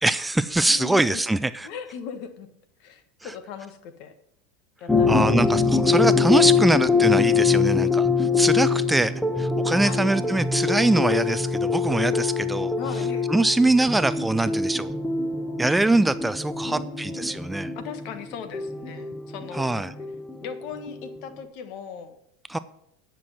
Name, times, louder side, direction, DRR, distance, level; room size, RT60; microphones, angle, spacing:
voice 1, 0.0-1.7 5.1-12.7 13.3-14.9 15.6-17.7 19.5-19.9 22.5-22.6, right 2 dB, 10° right, 14 dB, 0.4 m, -23 dB
voice 2, 0.7-1.2 1.6-2.5 2.8-4.1 4.8-5.6 5.8-5.9 9.8-10.4 12.8-13.3 16.6-17.4 17.7-19.8 20.4-22.1, left 7 dB, 55° left, 9 dB, 1.5 m, -38 dB
sound 1, 4.9-21.2, left 5 dB, 10° left, 1.2 m, -24 dB
9.8 x 6.0 x 7.5 m, 0.77 s
hypercardioid pair, 95°, 0 cm